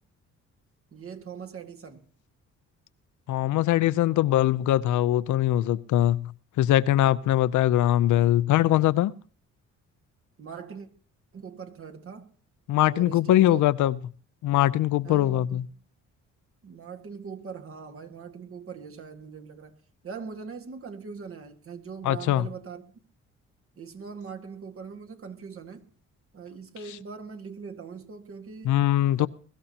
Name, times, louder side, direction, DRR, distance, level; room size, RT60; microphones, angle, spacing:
voice 1, 0.9-2.0 10.4-10.9 11.3-12.3 12.8-13.9 15.0-15.8 16.6-22.8 23.7-25.9 26.3-28.8 29.2-29.3, right 6 dB, 45° right, 1.8 m, -41 dB
voice 2, 3.3-6.3 6.6-9.1 12.7-14.0 14.4-15.6 22.0-22.5 28.6-29.3, left 13 dB, 75° left, 0.6 m, -22 dB
22.0 x 14.0 x 2.9 m
cardioid pair, 90°, 30 cm